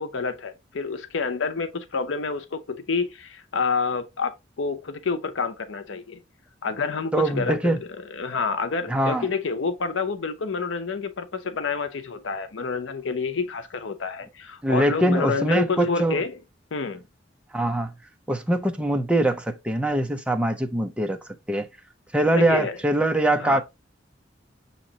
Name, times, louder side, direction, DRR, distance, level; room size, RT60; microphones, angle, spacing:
voice 1, 0.0-6.2 6.6-16.4 16.7-17.0 22.3-22.8 23.3-23.6, left 4 dB, 90° left, 0.7 m, -28 dB
voice 2, 7.1-7.8 8.9-9.3 14.6-16.2 17.5-17.9 18.3-21.2 21.5-21.7 22.1-23.6, right 1 dB, 5° right, 0.5 m, -23 dB
6.3 x 2.9 x 2.7 m
head